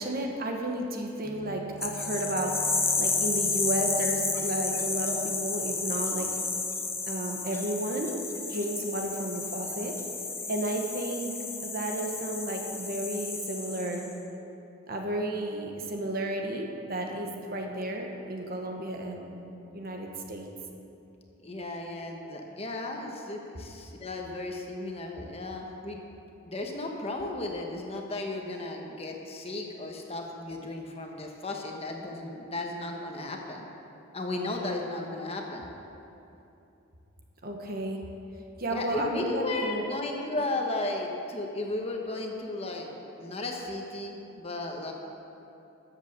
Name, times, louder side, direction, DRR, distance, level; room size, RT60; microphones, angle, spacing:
voice 1, 0.0-6.3 7.1-8.1 8.5-9.9 10.5-11.4 11.6-14.0 14.9-20.5 37.4-38.0 38.6-39.8, right 1 dB, 45° right, 2 dB, 1.3 m, -32 dB
sound 1, 1.2-6.1, right 4 dB, 15° right, 0.9 m, -47 dB
sound 2, 1.8-14.1, left 4 dB, 10° left, 0.8 m, -32 dB
voice 2, 21.4-26.0 26.4-33.6 34.1-35.7 38.7-42.9 43.2-44.9, left 2 dB, 30° left, 1 dB, 1.2 m, -34 dB
13.5 x 8.0 x 6.7 m, 2.9 s
head